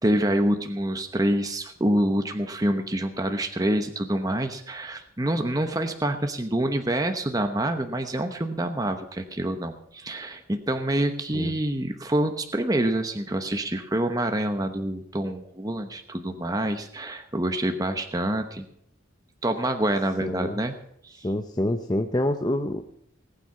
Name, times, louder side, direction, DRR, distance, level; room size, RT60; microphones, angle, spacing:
voice 1, 0.0-18.6 19.4-20.7 21.0-21.3, right 1 dB, 20° right, 6 dB, 0.9 m, -26 dB
voice 2, 20.2-20.6 21.2-22.8, left 1 dB, 20° left, 5 dB, 0.7 m, -26 dB
19.0 x 9.2 x 5.5 m, 0.74 s
head